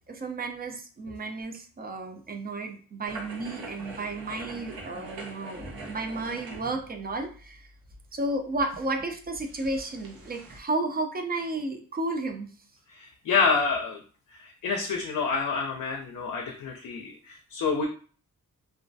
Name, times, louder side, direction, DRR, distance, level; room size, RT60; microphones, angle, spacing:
voice 1, 0.1-7.7 8.1-12.5, right 2 dB, 30° right, 5 dB, 0.4 m, -32 dB
sound 1, 3.0-10.6, right 2 dB, 75° right, 0.7 m, -44 dB
voice 2, 12.9-14.0 14.3-17.9, left 5 dB, 65° left, 1 dB, 0.5 m, -28 dB
2.3 x 2.1 x 2.6 m, 0.40 s
cardioid pair, 80°, 34 cm